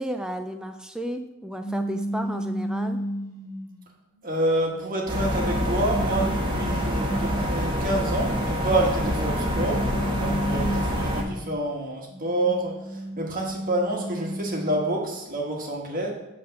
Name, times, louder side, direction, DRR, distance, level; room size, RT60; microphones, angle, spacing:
voice 1, 0.0-3.0 10.4-10.6, equal, 5° right, 7 dB, 0.3 m, -33 dB
sound 1, 1.6-3.8 4.4-7.5 8.7-11.6 12.1-15.1, equal, 15° left, 2.5 m, -34 dB
voice 2, 4.2-9.9 10.2-16.1, right 1 dB, 40° right, -1 dB, 1.4 m, -28 dB
sound 2, 5.1-11.2, equal, 20° right, 1.2 m, -26 dB
8.0 x 3.4 x 6.5 m, 1.0 s
head